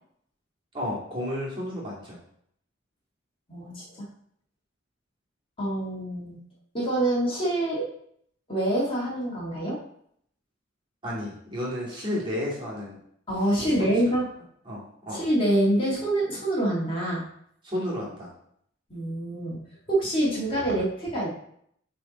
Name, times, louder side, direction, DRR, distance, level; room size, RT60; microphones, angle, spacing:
voice 1, 0.7-2.2 11.0-13.0 14.7-15.2 17.6-18.3, left 1 dB, 25° right, -6 dB, 2.0 m, -32 dB
voice 2, 3.5-4.0 5.6-6.4 6.7-7.9 8.5-9.8 13.3-14.3 15.1-17.2 18.9-19.6 19.9-21.3, right 1 dB, 30° left, -5 dB, 1.8 m, -26 dB
8.3 x 3.5 x 4.0 m, 0.69 s
head